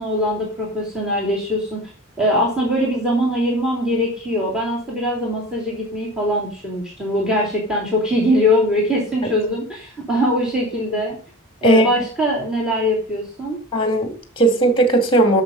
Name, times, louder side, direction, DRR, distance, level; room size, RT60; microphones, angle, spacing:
voice 1, 0.0-1.8 2.2-11.2 11.6-13.6, equal, 5° right, 3.4 m, -21 dB
voice 2, 13.7-15.4, right 1 dB, 25° left, 2.3 m, -16 dB
11.5 x 6.8 x 5.4 m
head